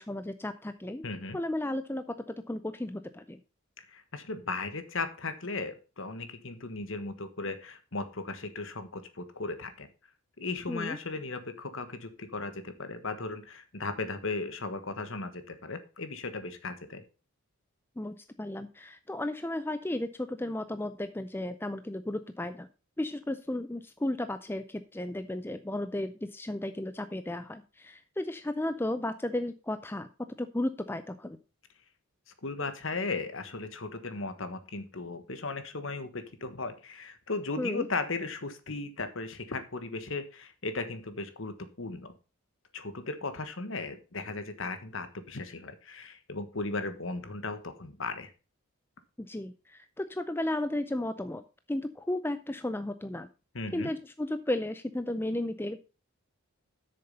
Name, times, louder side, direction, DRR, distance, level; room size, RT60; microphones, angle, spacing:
voice 1, 0.0-1.1 1.3-3.4 10.7-11.0 18.0-22.7 23.0-30.1 30.4-31.4 37.6-37.9 49.2-51.4 51.7-53.3 53.7-55.8, left 1 dB, 10° left, 10 dB, 0.4 m, -34 dB
voice 2, 1.0-1.4 3.9-9.9 10.4-17.0 32.4-42.1 42.7-48.3 53.5-53.9, left 3 dB, 60° left, 10 dB, 1.3 m, -36 dB
8.1 x 6.6 x 5.4 m, 0.33 s
head